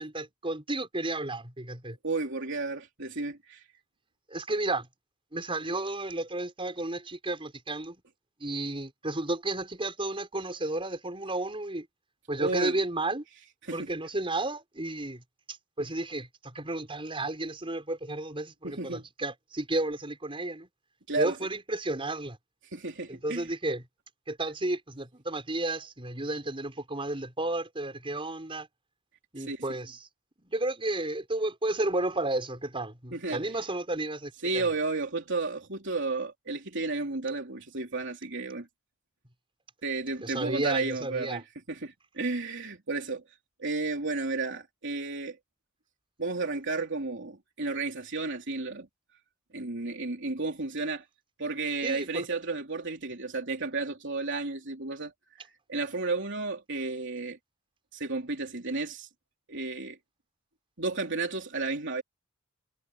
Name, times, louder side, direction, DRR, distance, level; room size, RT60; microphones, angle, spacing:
voice 1, 0.0-2.0 4.3-4.9 5.3-8.0 8.4-11.9 12.3-13.2 13.7-20.7 21.2-22.4 23.1-23.8 24.3-28.7 29.3-30.1 30.4-34.7 40.2-41.4 51.8-52.3, right 2 dB, 25° right, 5.6 m, -32 dB
voice 2, 2.0-3.6 12.4-12.7 13.6-13.9 18.6-19.0 21.1-21.3 22.7-23.5 29.4-29.8 33.1-33.4 34.4-38.7 39.8-41.4 41.7-43.2 43.6-45.4 46.2-48.9 49.5-51.0 51.4-55.1 55.4-57.4 57.9-59.1 59.5-60.0 60.8-62.0, right 3 dB, 60° right, 3.4 m, -32 dB
head